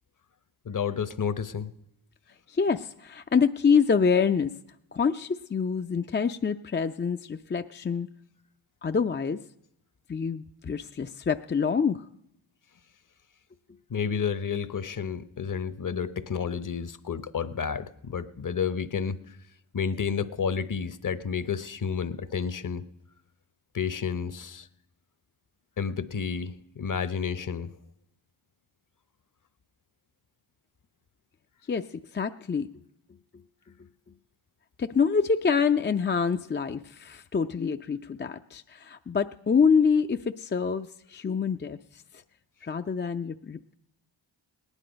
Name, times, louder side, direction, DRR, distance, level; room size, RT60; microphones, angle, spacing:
voice 1, 0.6-1.7 13.9-19.4 19.7-22.8 23.7-24.7 25.8-27.7, left 6 dB, 40° left, 14 dB, 0.9 m, -31 dB
voice 2, 2.5-4.5 4.9-8.1 8.8-9.4 10.1-12.1 31.7-32.7 34.8-42.2 42.6-43.7, left 6 dB, 25° left, 7 dB, 0.5 m, -26 dB
18.0 x 9.9 x 5.1 m, 0.79 s
cardioid pair, 50°, 47 cm